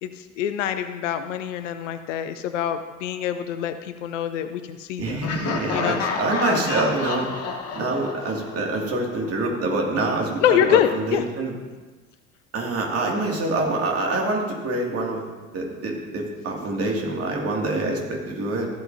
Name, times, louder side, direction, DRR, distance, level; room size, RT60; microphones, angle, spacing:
voice 1, 0.0-5.2 5.7-6.0 6.5-6.6 10.4-11.2, left 10 dB, 60° left, 10 dB, 0.7 m, -25 dB
voice 2, 5.0-7.3 7.7-11.5 12.5-15.3 15.5-18.7, right 2 dB, 35° right, 0 dB, 2.3 m, -26 dB
Laughter, 5.2-9.1, left 5 dB, 35° left, 1.2 m, -30 dB
14.5 x 8.2 x 2.7 m, 1.3 s
figure-of-eight pair, 65°, 41 cm